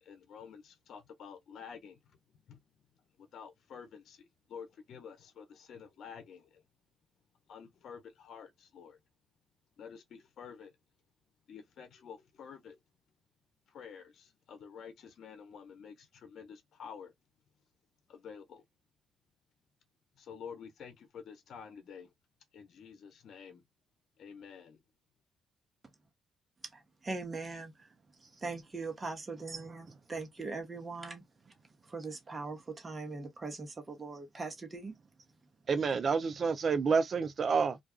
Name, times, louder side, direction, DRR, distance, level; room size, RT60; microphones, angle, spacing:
voice 1, 0.0-2.0 2.5-2.6 3.2-6.6 7.5-9.0 9.8-10.7 11.5-12.8 13.7-17.1 18.1-18.6 20.2-22.1 22.5-23.6 24.2-24.8, left 7 dB, 65° left, 0.8 m, -49 dB
voice 2, 27.0-27.7 28.4-31.2 31.9-34.9, right 3 dB, 30° right, 1.0 m, -40 dB
voice 3, 35.7-37.8, right 5 dB, 45° right, 0.5 m, -29 dB
2.5 x 2.3 x 2.3 m
cardioid pair, 90°, 0 cm